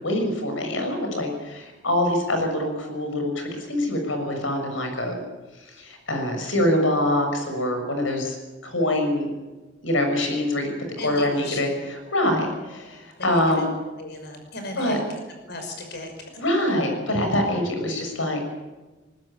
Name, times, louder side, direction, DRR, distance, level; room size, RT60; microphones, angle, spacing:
voice 1, 0.0-5.2 5.6-8.4 8.6-9.3 9.8-10.7 11.0-13.7 14.8-15.0 16.4-18.4, left 1 dB, 75° left, 4 dB, 6.6 m, -24 dB
voice 2, 11.0-11.6 12.6-12.9 13.2-13.6 14.0-15.0 15.5-16.3, left 2 dB, 55° left, 5 dB, 5.8 m, -36 dB
20.5 x 19.5 x 9.0 m, 1.2 s
head